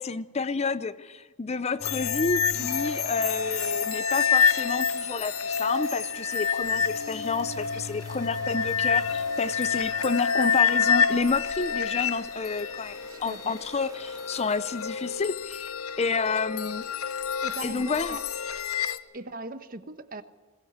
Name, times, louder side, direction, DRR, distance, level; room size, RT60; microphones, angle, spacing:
voice 1, 0.0-16.8 17.6-18.2, left 4 dB, 30° left, 0.5 m, -30 dB
sound 1, 1.8-19.0, left 6 dB, 75° left, 1.0 m, -28 dB
Fire, 2.6-15.4, right 3 dB, 15° right, 2.4 m, -49 dB
voice 2, 13.1-13.6 17.4-18.2 19.1-20.2, right 2 dB, 40° right, 1.2 m, -39 dB
21.5 x 18.0 x 8.1 m
head